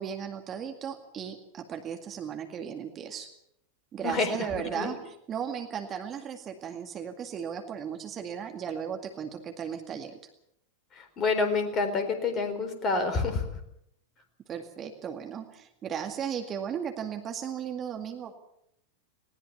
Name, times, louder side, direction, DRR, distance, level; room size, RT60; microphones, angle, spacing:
voice 1, 0.0-3.3 3.9-10.2 14.5-18.3, right 8 dB, 25° right, 5 dB, 2.1 m, -36 dB
voice 2, 4.0-4.5 4.7-5.0 10.9-13.5, left 4 dB, 30° left, 8 dB, 4.1 m, -28 dB
20.0 x 19.0 x 7.0 m, 0.76 s
figure-of-eight pair, 90°, 0 cm